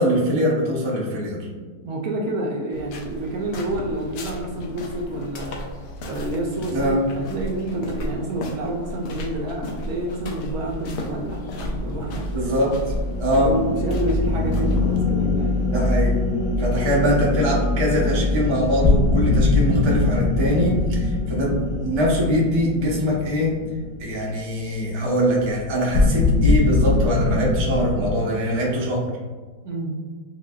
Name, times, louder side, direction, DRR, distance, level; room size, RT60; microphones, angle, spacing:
voice 1, 0.0-1.4 6.7-7.0 12.3-12.8 13.2-13.5 15.7-16.2 16.6-23.5 24.0-29.0, equal, 50° right, -4 dB, 0.3 m, -22 dB
voice 2, 1.8-5.6 6.1-12.5 13.3-15.8 29.6-30.0, right 1 dB, 70° right, 0 dB, 0.9 m, -29 dB
sound 1, 2.7-15.0, left 1 dB, 75° left, 1.1 m, -34 dB
sound 2, 10.6-24.1, left 2 dB, 25° right, 0.8 m, -26 dB
sound 3, 18.8-23.9 25.9-28.2, left 3 dB, 60° left, 0.7 m, -21 dB
6.2 x 2.2 x 2.3 m, 1.4 s
omnidirectional pair, 1.9 m